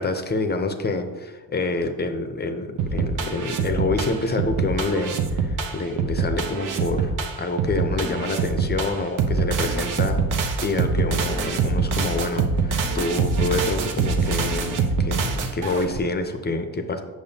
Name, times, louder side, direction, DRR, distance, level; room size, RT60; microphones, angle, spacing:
voice 1, 0.0-17.0, left 3 dB, 30° left, 7 dB, 0.6 m, -27 dB
sound 1, 2.8-16.0, right 4 dB, 60° right, 0.8 m, -24 dB
6.9 x 6.2 x 2.8 m, 1.3 s
cardioid pair, 100°, 35 cm